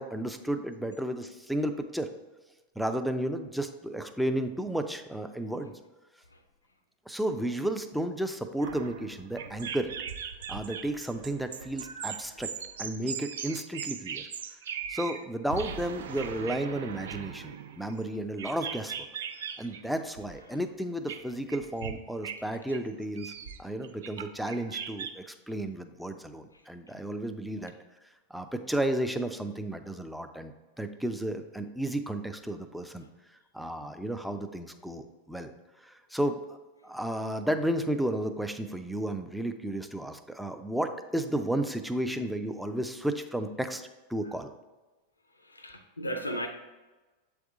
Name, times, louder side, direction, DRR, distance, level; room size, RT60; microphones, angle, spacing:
voice 1, 0.0-2.1 2.8-5.7 7.1-9.9 10.5-12.5 12.8-14.3 14.9-19.1 19.6-23.3 23.6-27.7 28.3-33.0 33.5-35.5 35.8-36.6 36.8-43.8 44.1-44.5, right 1 dB, ahead, 7 dB, 0.4 m, -33 dB
sound 1, 8.6-15.2 15.5-19.8 20.2-20.4 21.1-22.0 22.2-22.4 22.7-25.1, right 7 dB, 60° right, 0.4 m, -39 dB
voice 2, 45.4-46.5, equal, 80° left, 7 dB, 0.5 m, -36 dB
7.6 x 3.5 x 3.6 m, 1.2 s
figure-of-eight pair, 90°, 0 cm